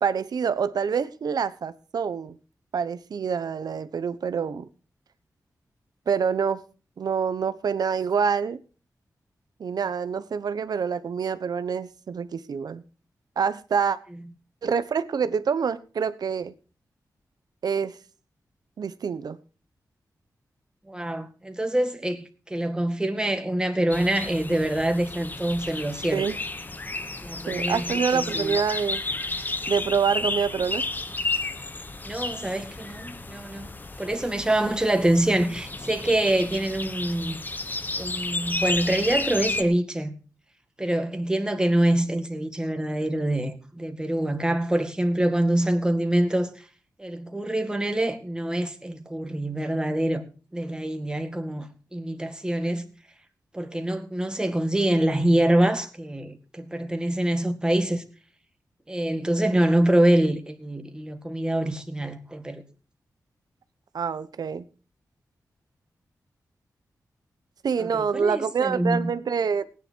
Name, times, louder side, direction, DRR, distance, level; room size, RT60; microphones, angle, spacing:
voice 1, 0.0-2.4 2.7-4.7 6.1-6.6 7.0-8.6 9.6-12.8 13.4-14.0 14.6-16.5 17.6-18.0 18.8-19.4 26.1-26.4 27.5-29.0 29.7-30.8 63.9-64.6 67.6-69.7, right 6 dB, 80° right, 1.0 m, -26 dB
voice 2, 20.9-26.3 27.2-27.8 28.1-28.5 32.0-33.7 34.0-37.4 38.0-40.2 40.8-46.5 47.0-50.2 50.5-52.9 53.5-58.0 58.9-62.6 67.8-69.1, right 1 dB, 10° right, 2.1 m, -25 dB
sound 1, 23.9-39.6, left 2 dB, 30° left, 1.1 m, -32 dB
18.0 x 9.9 x 4.6 m
wide cardioid pair, 95°, 7 cm